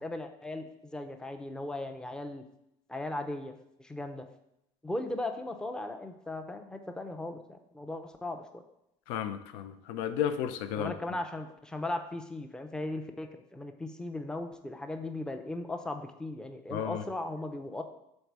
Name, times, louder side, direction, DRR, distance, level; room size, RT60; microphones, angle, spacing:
voice 1, 0.0-2.4 2.9-4.3 4.8-8.6 10.8-17.8, left 2 dB, 5° left, 6 dB, 0.5 m, -37 dB
voice 2, 9.1-10.9 16.7-17.0, left 9 dB, 80° left, 10 dB, 0.5 m, -33 dB
5.3 x 4.1 x 4.6 m, 0.81 s
cardioid pair, 135°, 13 cm